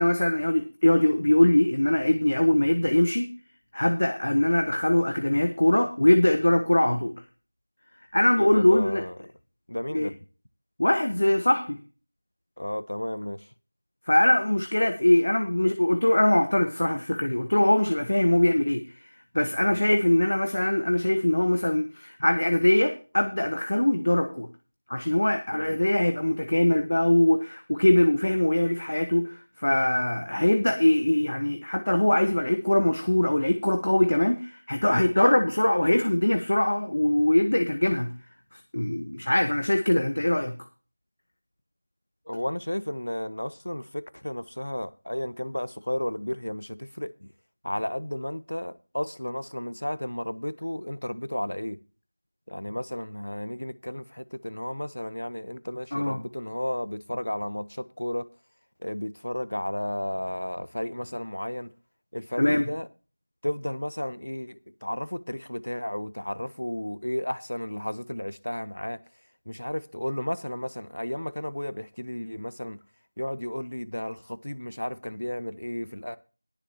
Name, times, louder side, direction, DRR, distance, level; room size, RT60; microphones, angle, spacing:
voice 1, 0.0-3.3 3.7-7.1 8.1-9.0 9.9-10.1 10.8-11.8 14.1-19.0 19.3-24.5 24.9-38.1 38.5-40.5 55.9-56.2 62.4-62.7, left 1 dB, 45° left, 1.2 m, -22 dB
voice 2, 8.4-9.1 9.7-10.2 12.6-13.5 19.6-19.8 25.5-25.8 42.3-47.3 47.6-51.8 52.5-58.2 58.8-61.7 62.1-62.9 63.4-69.0 69.5-72.8 73.2-76.2, left 1 dB, 85° left, 1.1 m, -33 dB
21.0 x 7.1 x 2.9 m
figure-of-eight pair, 180°, 0 cm